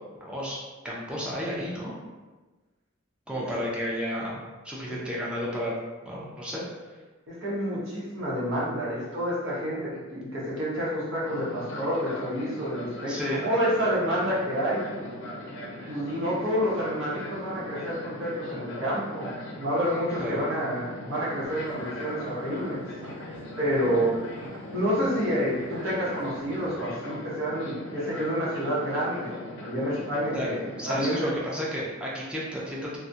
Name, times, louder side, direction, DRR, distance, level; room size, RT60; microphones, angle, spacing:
voice 1, 0.2-0.6 0.8-1.9 3.3-5.7 6.0-6.6 13.1-13.5 20.2-20.4 30.3-30.5 30.8-33.0, equal, 5° right, -5 dB, 0.4 m, -32 dB
voice 2, 7.3-14.8 15.9-22.8 23.6-24.2 24.7-29.3 29.6-31.3, equal, 65° right, -8 dB, 0.9 m, -28 dB
Fixed-wing aircraft airplane, 11.3-31.0, left 1 dB, 65° left, 0.4 m, -40 dB
sound 1, 21.4-26.7, right 2 dB, 90° right, 0.3 m, -46 dB
2.3 x 2.1 x 2.6 m, 1.3 s
head